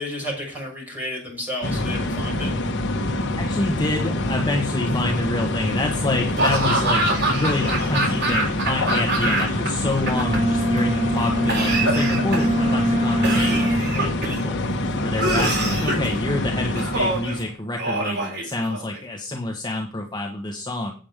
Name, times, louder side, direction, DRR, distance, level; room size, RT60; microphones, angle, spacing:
voice 1, 0.0-2.5, left 1 dB, 10° right, -3 dB, 6.4 m, -31 dB
sound 1, 1.6-17.6, left 1 dB, 60° left, 1.2 m, -26 dB
voice 2, 3.4-14.6 15.0-20.9, left 2 dB, 20° left, 1 dB, 1.4 m, -27 dB
Laughter / Cough, 6.4-9.7 9.9-10.8 11.5-12.6 13.2-14.4 15.2-16.1 16.8-17.3 17.8-19.0, right 2 dB, 55° right, 3.7 m, -24 dB
Bowed string instrument, 10.0-14.1, equal, 30° right, 1.0 m, -23 dB
9.0 x 7.3 x 4.9 m, 0.38 s
head